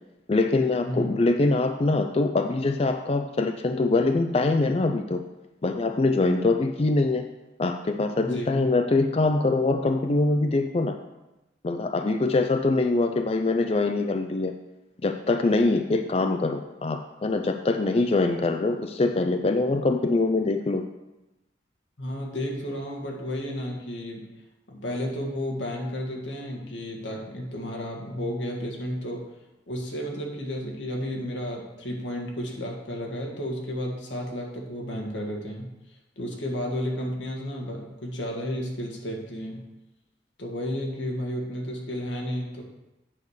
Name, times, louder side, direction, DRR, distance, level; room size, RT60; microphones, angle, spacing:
voice 1, 0.3-5.2 5.6-7.2 7.6-11.0 11.6-14.5 15.0-20.8, left 3 dB, 35° left, 6 dB, 0.4 m, -23 dB
voice 2, 0.8-1.2 8.2-8.6 22.0-24.3 24.7-29.4 29.7-39.7 40.4-42.6, equal, 85° left, 0 dB, 1.8 m, -32 dB
8.5 x 4.9 x 6.5 m, 1.0 s
head